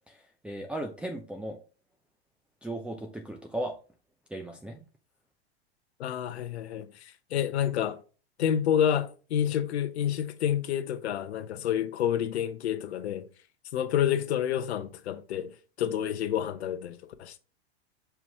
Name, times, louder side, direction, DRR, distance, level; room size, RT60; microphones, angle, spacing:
voice 1, 0.1-1.6 2.6-3.7 4.3-4.8, right 1 dB, 5° right, 0.6 m, -36 dB
voice 2, 6.0-8.0 8.4-13.3 13.7-15.5 15.8-17.4, left 9 dB, 80° left, 0.8 m, -29 dB
5.8 x 4.5 x 3.5 m
hypercardioid pair, 100°, 32 cm